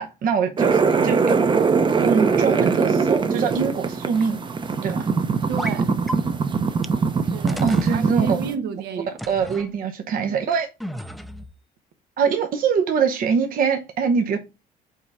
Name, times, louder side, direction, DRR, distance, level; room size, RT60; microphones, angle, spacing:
voice 1, 0.0-1.4 2.0-4.4 4.8-5.1 7.6-8.4 9.3-10.7 12.2-14.4, right 6 dB, 55° right, 0.9 m, -23 dB
sound 1, 0.6-8.5, right 5 dB, 30° right, 0.8 m, -21 dB
voice 2, 5.5-5.9 7.3-9.2, right 7 dB, 75° right, 1.2 m, -31 dB
sound 2, 5.6-5.8 6.1-6.2 6.8-6.9 7.5-8.0 9.2-9.7 10.8-11.5, equal, ahead, 0.5 m, -32 dB
5.6 x 4.2 x 4.8 m
cardioid pair, 110°, 17 cm